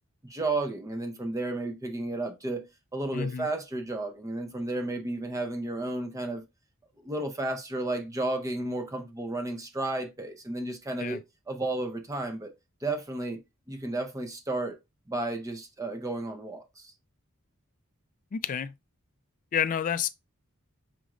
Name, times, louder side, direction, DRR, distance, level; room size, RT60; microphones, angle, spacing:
voice 1, 0.3-6.4 7.0-11.2 11.5-12.5 12.8-13.4 13.7-14.8 15.1-16.9, right 2 dB, 15° right, 0.6 m, -32 dB
voice 2, 3.1-3.5 11.0-11.2 18.3-18.7 19.5-20.1, left 8 dB, 35° left, 0.3 m, -29 dB
5.9 x 2.5 x 3.0 m
head